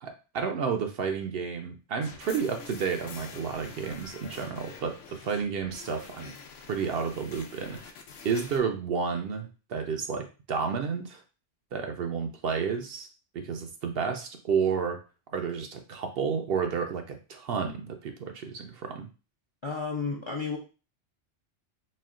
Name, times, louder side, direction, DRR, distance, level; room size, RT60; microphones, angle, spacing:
voice 1, 0.0-6.3 6.7-7.8 8.2-11.2 11.7-13.1 13.3-15.0 15.3-19.1, right 6 dB, 60° right, 5 dB, 0.7 m, -31 dB
sound 1, 2.0-8.6, left 5 dB, 90° left, 1.0 m, -46 dB
voice 2, 19.6-20.6, left 4 dB, 40° left, 1 dB, 0.4 m, -32 dB
4.2 x 2.2 x 3.6 m, 0.33 s
omnidirectional pair, 1.2 m